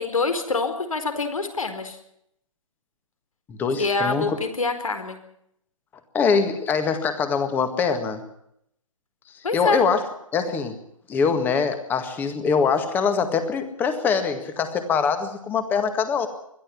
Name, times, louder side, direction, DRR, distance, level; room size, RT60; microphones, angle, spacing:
voice 1, 0.0-2.0 3.8-5.2 9.4-9.8, left 3 dB, 70° left, 8 dB, 4.5 m, -25 dB
voice 2, 3.5-4.4 6.1-8.2 9.5-10.0 10.3-10.8 11.1-16.3, left 5 dB, 10° left, 9 dB, 1.8 m, -23 dB
22.0 x 13.5 x 9.7 m, 0.75 s
figure-of-eight pair, 145°, 18 cm